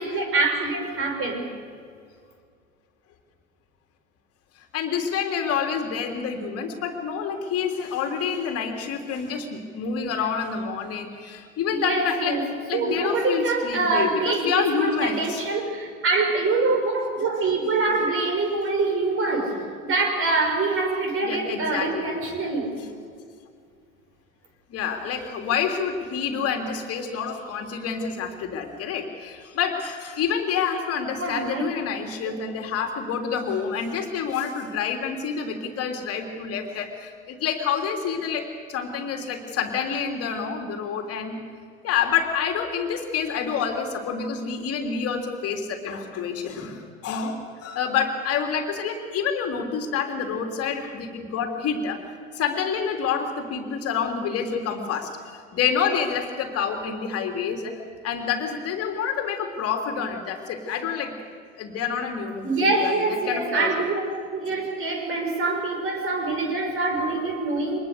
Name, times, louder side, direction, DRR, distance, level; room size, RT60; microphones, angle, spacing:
voice 1, 0.0-1.5 11.7-22.7 31.1-31.7 32.2-32.4 62.4-64.0 64.3-67.8, right 3 dB, 30° right, 4 dB, 5.4 m, -25 dB
voice 2, 4.7-12.4 12.7-15.4 21.2-22.0 24.7-41.4 41.8-52.0 52.3-57.8 58.0-61.2 61.6-63.7, left 6 dB, 35° left, 4 dB, 3.2 m, -28 dB
24.5 x 20.0 x 6.7 m, 2.2 s
figure-of-eight pair, 85°, 41 cm